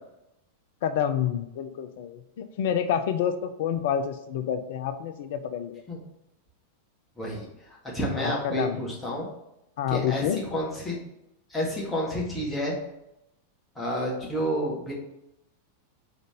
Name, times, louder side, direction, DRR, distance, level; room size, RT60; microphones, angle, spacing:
voice 1, 0.8-5.8 8.1-8.9 9.8-10.4, left 8 dB, 55° left, 9 dB, 0.6 m, -28 dB
voice 2, 7.2-9.3 9.9-11.0 11.5-12.7 13.8-15.0, equal, 10° left, -4 dB, 2.0 m, -30 dB
5.2 x 4.0 x 5.0 m, 0.85 s
figure-of-eight pair, 90°, 0 cm